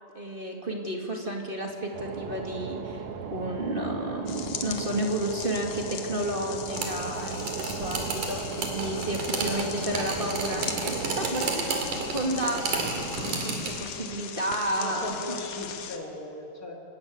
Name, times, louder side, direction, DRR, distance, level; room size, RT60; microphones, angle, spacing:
voice 1, 0.1-15.1, right 1 dB, 20° right, 1 dB, 1.6 m, -32 dB
sound 1, 1.9-11.3, right 6 dB, 60° right, 1.9 m, -38 dB
sound 2, 4.3-16.0, left 8 dB, 70° left, 2.4 m, -40 dB
sound 3, 6.7-13.8, right 3 dB, 80° right, 3.9 m, -32 dB
voice 2, 14.8-16.8, left 1 dB, 30° left, 0 dB, 2.6 m, -38 dB
28.0 x 12.0 x 8.5 m, 2.7 s
omnidirectional pair, 3.6 m